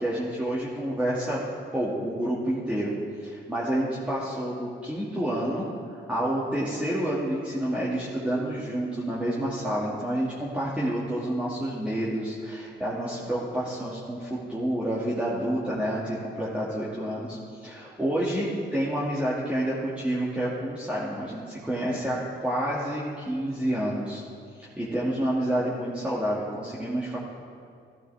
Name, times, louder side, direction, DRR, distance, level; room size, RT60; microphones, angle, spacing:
voice 1, 0.0-1.4 1.7-2.9 3.2-5.7 5.9-22.2 22.4-24.2 24.8-27.2, right 1 dB, 5° right, -7 dB, 2.2 m, -29 dB
14.5 x 13.5 x 3.5 m, 2.2 s
cardioid pair, 90°, 20 cm